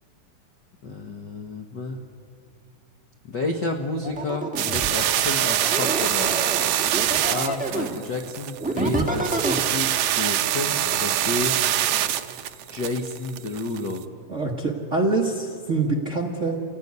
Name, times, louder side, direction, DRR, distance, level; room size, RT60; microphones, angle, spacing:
voice 1, 0.8-2.0 3.3-6.3 7.3-11.6 12.7-14.0, left 2 dB, 50° left, 3 dB, 1.3 m, -30 dB
sound 1, 4.0-4.9 5.6-8.0 8.6-9.6, right 2 dB, 5° right, 0.7 m, -27 dB
sound 2, 4.5-14.0, right 12 dB, 85° right, 1.3 m, -24 dB
voice 2, 14.3-16.6, right 3 dB, 55° right, 1 dB, 0.8 m, -25 dB
28.0 x 17.5 x 9.5 m, 2.6 s
omnidirectional pair, 3.8 m